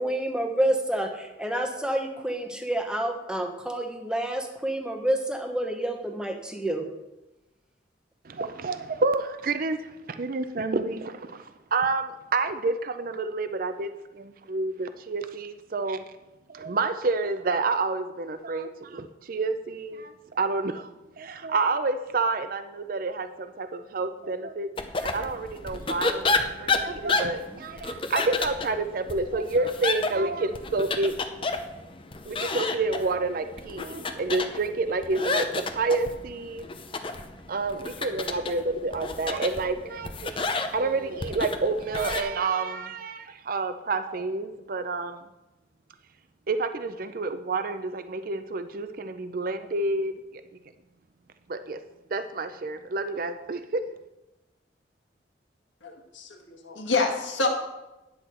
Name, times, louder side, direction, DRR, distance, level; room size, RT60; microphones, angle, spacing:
voice 1, 0.0-6.9, right 1 dB, 5° right, 3 dB, 1.0 m, -28 dB
voice 2, 8.2-16.0 16.5-20.9 21.2-24.7 24.9-31.2 32.3-36.7 37.5-45.2 46.5-50.1 51.5-51.8 52.1-53.8, right 3 dB, 50° right, 9 dB, 0.5 m, -29 dB
sound 1, 24.8-42.2, left 3 dB, 30° left, 0.6 m, -31 dB
voice 3, 55.8-57.5, left 3 dB, 85° left, 3 dB, 1.5 m, -27 dB
10.0 x 7.9 x 4.3 m, 1.0 s
head